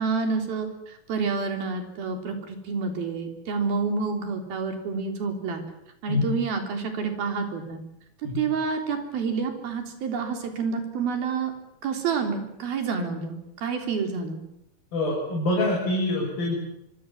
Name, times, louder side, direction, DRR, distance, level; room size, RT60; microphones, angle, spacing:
voice 1, 0.0-5.6 6.0-7.8 8.4-11.5 11.8-14.4, right 5 dB, 85° right, 5 dB, 5.5 m, -28 dB
voice 2, 14.9-16.5, left 2 dB, 75° left, -4 dB, 8.6 m, -25 dB
25.5 x 25.0 x 7.4 m, 0.80 s
omnidirectional pair, 4.2 m